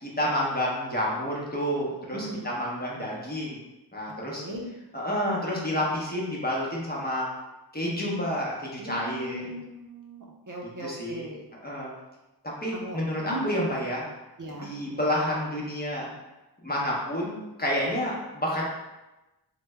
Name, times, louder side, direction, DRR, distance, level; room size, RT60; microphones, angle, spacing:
voice 1, 0.0-3.6 3.9-4.4 4.9-7.3 7.7-9.5 10.8-11.3 11.6-11.9 12.6-14.0 14.5-16.1 16.6-18.6, equal, 25° left, -4 dB, 0.8 m, -29 dB
voice 2, 2.1-2.5 4.3-4.6 8.0-8.1 8.8-11.4 12.7-13.0 13.2-13.4 14.4-14.7 17.9-18.0, right 1 dB, 50° right, -2 dB, 0.5 m, -38 dB
3.2 x 2.1 x 3.3 m, 1.0 s
wide cardioid pair, 60°, 41 cm